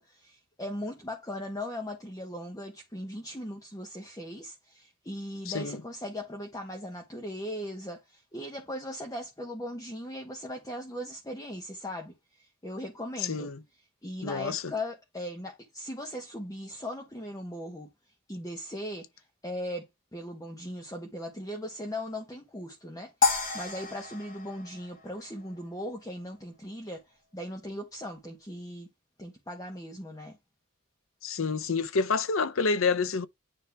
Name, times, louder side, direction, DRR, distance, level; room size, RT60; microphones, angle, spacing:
voice 1, 0.0-13.5 14.0-17.9 18.3-19.1 19.4-19.9 20.1-27.0 27.3-28.9 29.2-30.4, left 1 dB, 15° left, 1.5 m, -38 dB
voice 2, 5.5-5.8 13.2-13.6 14.2-14.7 31.2-33.3, left 4 dB, 75° left, 0.7 m, -28 dB
sound 1, 23.2-25.6, left 5 dB, 40° left, 1.8 m, -30 dB
9.6 x 3.4 x 3.5 m
head